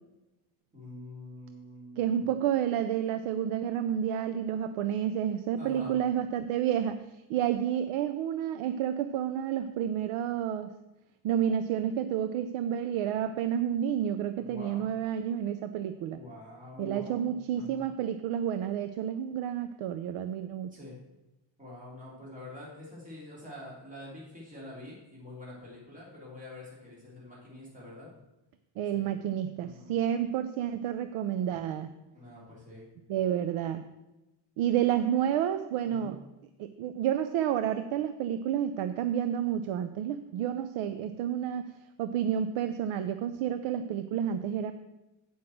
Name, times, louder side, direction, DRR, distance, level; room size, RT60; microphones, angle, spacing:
voice 1, 0.7-2.3 5.6-5.9 14.4-14.8 16.1-17.2 17.5-17.8 20.7-21.0 21.6-28.1 28.9-29.1 29.6-29.9 32.1-32.9 35.8-36.2, left 1 dB, 15° right, -5 dB, 3.1 m, -46 dB
voice 2, 2.0-10.7 11.2-16.2 16.8-20.7 28.8-31.9 33.1-33.9 34.6-36.2 36.6-41.7 42.0-44.7, right 9 dB, 85° right, 10 dB, 0.7 m, -30 dB
7.8 x 5.5 x 7.6 m, 1.0 s
cardioid pair, 150°, 48 cm